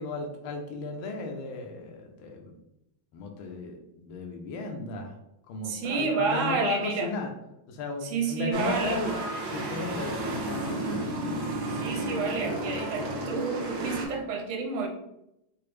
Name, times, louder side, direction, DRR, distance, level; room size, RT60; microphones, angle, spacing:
voice 1, 0.0-2.6 3.1-5.2 5.5-7.3 7.7-9.2 9.4-11.1, left 3 dB, 75° left, 2 dB, 1.3 m, -35 dB
voice 2, 5.6-7.1 8.0-9.0 11.7-14.9, right 5 dB, 80° right, 2 dB, 1.5 m, -30 dB
sound 1, 8.5-14.1, right 1 dB, 60° right, 0.9 m, -32 dB
4.8 x 2.0 x 3.1 m, 0.86 s
omnidirectional pair, 2.3 m